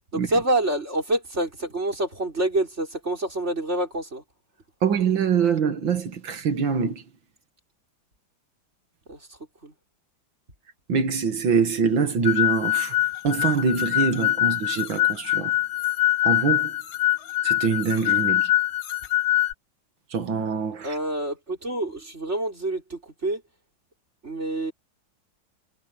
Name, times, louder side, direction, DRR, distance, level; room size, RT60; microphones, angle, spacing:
voice 1, 0.1-4.2 9.1-9.3 9.6-9.7 20.8-23.4 24.2-24.7, right 1 dB, 30° right, 5.8 m, -27 dB
voice 2, 4.8-7.0 10.9-13.0 13.2-15.5 16.2-16.7 17.4-18.5 20.1-20.9, right 6 dB, 65° right, 2.5 m, -24 dB
sound 1, 12.3-19.5, left 15 dB, 85° left, 2.0 m, -23 dB
omnidirectional pair, 2.2 m